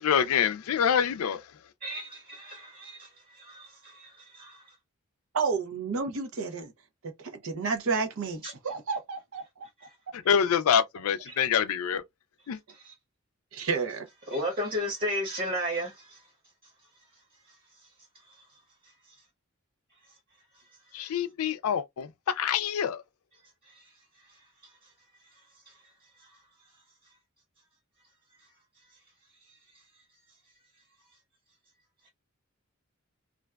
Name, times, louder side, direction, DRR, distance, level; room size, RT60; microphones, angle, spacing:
voice 1, 0.0-1.4 10.1-12.0 12.5-12.6 20.9-23.0, left 8 dB, 80° left, 0.4 m, -26 dB
voice 2, 1.8-4.7 8.4-8.5 11.3-11.4 12.7-12.9 14.3-16.2 23.7-23.9 25.7-25.8, equal, 45° right, 1.2 m, -34 dB
voice 3, 5.3-6.7 7.2-9.7 13.5-14.1, right 4 dB, 70° right, 0.6 m, -31 dB
2.5 x 2.2 x 2.2 m
head